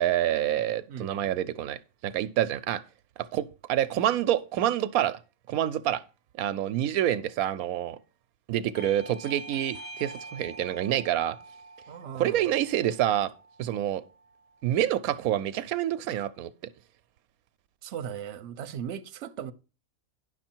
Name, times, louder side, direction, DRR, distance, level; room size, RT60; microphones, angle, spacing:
voice 1, 0.0-2.8 3.3-5.2 5.5-6.0 6.4-8.0 8.5-11.4 12.1-13.3 13.6-14.0 14.6-16.5, right 12 dB, 85° right, 1.1 m, -27 dB
voice 2, 0.9-1.3 11.9-12.5 17.8-19.5, right 8 dB, 60° right, 0.9 m, -38 dB
Bell / Doorbell, 8.7-13.9, right 2 dB, 85° left, 2.5 m, -45 dB
10.0 x 6.5 x 4.4 m
omnidirectional pair, 1.5 m